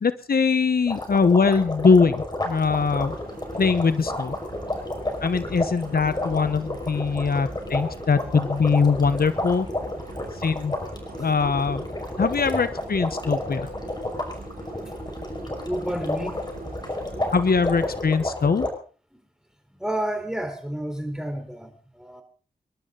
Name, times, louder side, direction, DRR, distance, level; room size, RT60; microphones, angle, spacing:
voice 1, 0.0-3.1 3.6-4.3 5.2-9.7 10.4-10.7 11.2-11.8 12.2-13.7 17.3-18.7, left 5 dB, 70° left, 12 dB, 1.0 m, -22 dB
sound 1, 0.9-18.7, left 1 dB, 25° left, 5.4 m, -31 dB
sound 2, 2.7-18.0, right 3 dB, 65° right, 3.7 m, -43 dB
voice 2, 15.7-16.4 19.7-22.2, right 1 dB, 5° right, 5 dB, 4.3 m, -30 dB
26.5 x 12.0 x 3.9 m, 0.39 s
wide cardioid pair, 70°, 16 cm